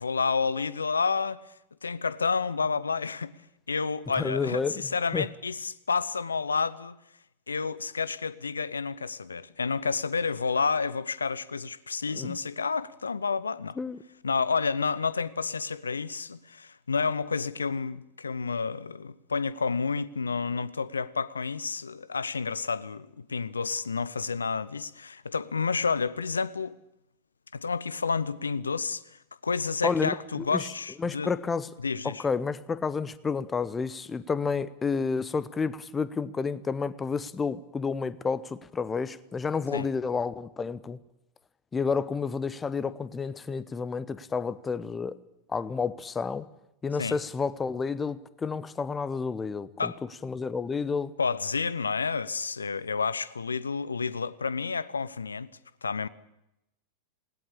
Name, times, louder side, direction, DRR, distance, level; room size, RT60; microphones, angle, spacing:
voice 1, 0.0-1.4 1.8-3.3 3.7-7.0 7.5-13.8 14.2-26.8 27.5-31.3 31.8-32.2 39.7-39.9 47.0-47.2 49.8-50.0 51.2-55.5 55.8-56.1, left 5 dB, 75° left, 0.8 m, -30 dB
voice 2, 4.2-4.8 5.1-5.3 12.1-12.4 13.8-14.0 29.8-30.7 31.0-31.7 32.0-41.0 41.7-45.2 45.5-46.5 46.8-49.9 50.2-51.1, left 5 dB, 15° left, 0.9 m, -30 dB
19.5 x 18.0 x 8.7 m
figure-of-eight pair, 90°, 0 cm